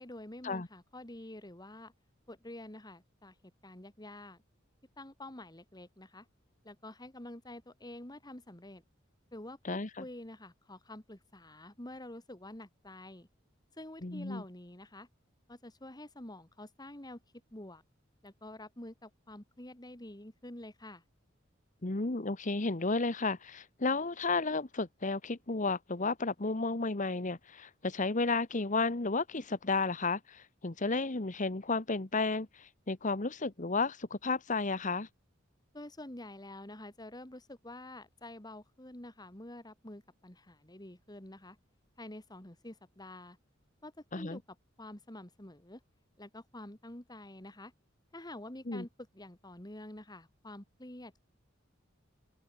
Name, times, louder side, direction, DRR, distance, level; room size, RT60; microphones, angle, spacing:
voice 1, 0.0-1.9 2.3-3.4 3.6-4.4 5.0-6.3 6.6-8.8 9.3-13.3 13.8-15.1 15.5-17.2 17.5-17.8 18.2-21.0 35.7-41.6 42.0-43.4 43.8-44.4 44.8-45.8 46.2-47.7 48.1-51.3, left 1 dB, 20° left, 2.4 m, -48 dB
voice 2, 14.0-14.4 21.8-35.1 44.1-44.4 48.7-48.8, left 3 dB, 40° left, 1.2 m, -32 dB
head